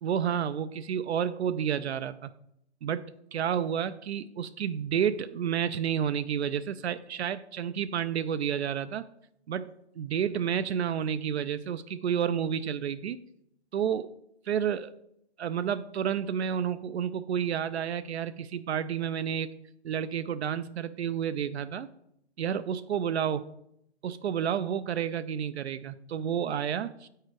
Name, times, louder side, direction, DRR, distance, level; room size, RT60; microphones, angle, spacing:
voice 1, 0.0-2.3 2.8-9.0 9.5-13.2 13.7-14.1 14.5-14.9 15.4-19.5 19.8-21.9 22.4-23.4 24.0-27.1, right 8 dB, 70° right, 13 dB, 0.5 m, -30 dB
7.6 x 4.7 x 4.6 m, 0.76 s
hypercardioid pair, 150°, 34 cm